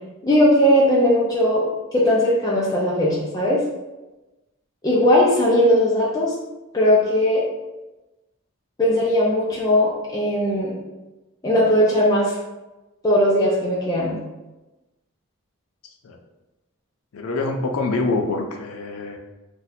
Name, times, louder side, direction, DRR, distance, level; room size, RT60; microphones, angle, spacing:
voice 1, 0.2-1.6 1.9-3.6 4.8-6.3 6.7-7.4 8.8-10.8 11.4-12.4 13.0-14.2, left 1 dB, 15° left, -6 dB, 0.4 m, -18 dB
voice 2, 17.1-19.2, left 3 dB, 80° left, 4 dB, 0.4 m, -25 dB
2.7 x 2.1 x 3.9 m, 1.1 s
head